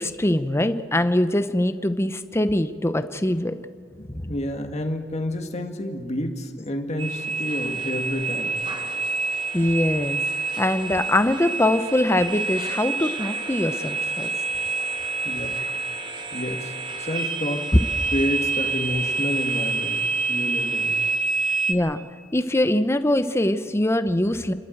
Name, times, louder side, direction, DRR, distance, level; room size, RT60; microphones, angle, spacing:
voice 1, 0.0-3.5 4.1-4.3 9.5-10.2 10.6-14.3 17.7-17.8 21.7-22.0 22.3-24.5, left 1 dB, 15° left, 10 dB, 0.8 m, -22 dB
voice 2, 4.0-8.6 15.3-15.6 16.3-16.7 17.0-17.7 18.1-20.0 20.3-21.0 21.5-21.6, left 1 dB, 35° left, 4 dB, 1.9 m, -29 dB
sound 1, 7.0-21.7, right 4 dB, 25° right, 1.4 m, -27 dB
29.5 x 12.5 x 7.9 m, 2.2 s
head